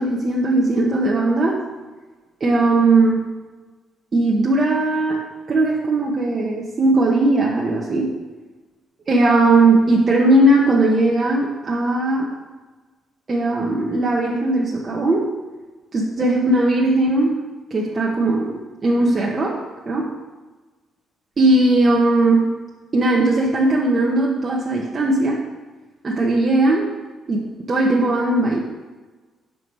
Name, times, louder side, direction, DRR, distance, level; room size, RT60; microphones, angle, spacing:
voice 1, 0.0-1.6 2.4-3.2 4.1-8.1 9.1-12.3 13.3-15.2 15.9-17.4 17.7-19.6 19.9-20.1 21.4-22.4 22.9-25.4 26.0-26.9 27.3-28.6, right 2 dB, 35° right, -3 dB, 1.0 m, -18 dB
5.8 x 4.7 x 5.3 m, 1.3 s
cardioid pair, 90°, 0 cm